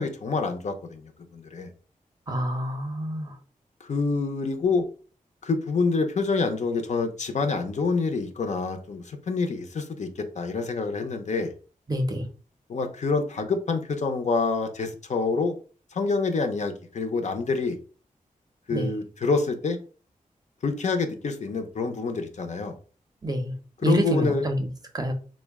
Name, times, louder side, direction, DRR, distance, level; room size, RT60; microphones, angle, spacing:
voice 1, 0.0-1.7 3.8-4.8 5.4-11.5 12.7-15.5 15.9-17.8 18.7-19.8 20.6-22.7 23.8-24.5, left 4 dB, 55° left, 0.5 m, -27 dB
voice 2, 2.3-3.3 11.9-12.3 18.7-18.9 23.2-23.5 23.8-24.7 24.9-25.1, right 1 dB, 25° right, 0.6 m, -27 dB
3.7 x 2.1 x 3.4 m
wide cardioid pair, 140°, 14 cm